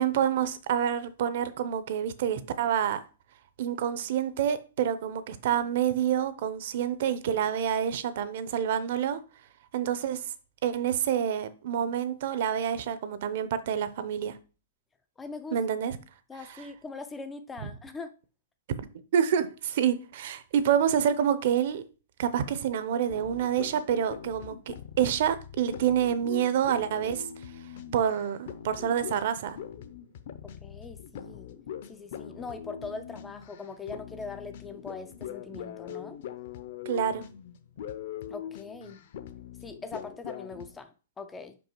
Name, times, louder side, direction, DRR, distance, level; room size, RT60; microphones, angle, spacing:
voice 1, 0.0-3.0 3.6-9.2 9.7-10.2 10.6-14.3 15.5-16.0 19.1-21.8 22.2-27.2 27.9-29.6 36.9-37.3, right 9 dB, 45° right, 0.6 m, -27 dB
voice 2, 15.2-15.6 16.3-18.1 30.6-31.5 31.9-36.2 38.3-39.0 39.6-41.6, left 4 dB, 10° left, 0.3 m, -41 dB
sound 1, 23.1-40.8, left 9 dB, 45° left, 0.6 m, -42 dB
5.4 x 5.3 x 4.4 m
hypercardioid pair, 175°, 0 cm